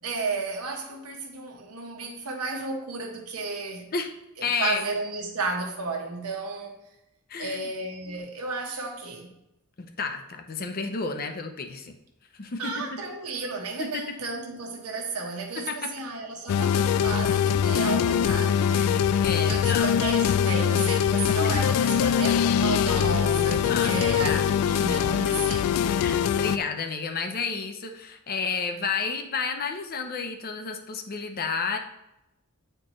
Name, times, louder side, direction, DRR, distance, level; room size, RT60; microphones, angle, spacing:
voice 1, 0.0-3.9 4.6-6.8 7.4-9.3 12.6-19.2 19.5-25.7, right 3 dB, 80° right, 1.2 m, -33 dB
voice 2, 4.4-4.8 7.3-7.7 9.8-11.9 12.3-13.0 13.8-14.0 15.5-15.9 18.7-20.0 21.4-21.6 23.6-24.6 26.0-31.8, left 5 dB, 40° left, 0.6 m, -31 dB
sound 1, 16.5-26.6, left 8 dB, 85° left, 0.3 m, -23 dB
8.9 x 4.4 x 3.1 m
head